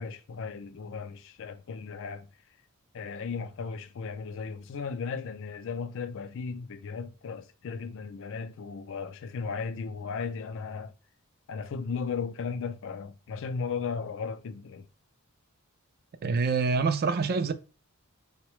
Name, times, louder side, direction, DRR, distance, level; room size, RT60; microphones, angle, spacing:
voice 1, 0.0-2.3 2.9-10.9 11.5-14.9, left 5 dB, 60° left, 0.4 m, -36 dB
voice 2, 16.2-17.5, right 4 dB, 45° right, 0.3 m, -26 dB
3.8 x 2.2 x 3.0 m
head